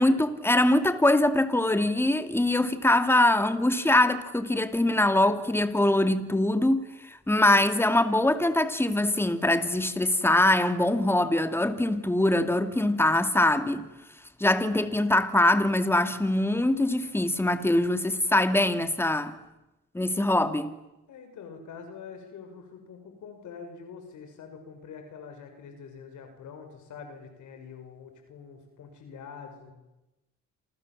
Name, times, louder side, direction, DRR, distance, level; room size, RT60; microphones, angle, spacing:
voice 1, 0.0-13.9 14.4-19.3 19.9-20.8, left 1 dB, 10° left, 2.3 m, -23 dB
voice 2, 21.1-29.7, left 6 dB, 75° left, 6.0 m, -45 dB
28.0 x 28.0 x 7.6 m
cardioid pair, 90°, 30 cm